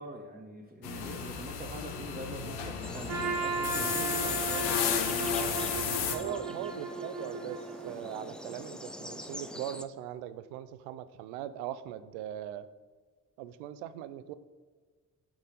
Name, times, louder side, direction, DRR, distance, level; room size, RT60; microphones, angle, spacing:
voice 1, 0.0-6.4, right 1 dB, 20° right, -1 dB, 1.0 m, -44 dB
sound 1, 0.8-6.2, left 7 dB, 70° left, 0.9 m, -33 dB
sound 2, 2.8-9.8, left 1 dB, ahead, 0.3 m, -44 dB
Trumpet, 3.1-8.2, right 4 dB, 50° right, 1.5 m, -36 dB
voice 2, 6.1-12.7 13.4-14.3, right 11 dB, 70° right, 14 dB, 0.5 m, -40 dB
5.9 x 5.3 x 5.0 m, 1.5 s
figure-of-eight pair, 40°, 45 cm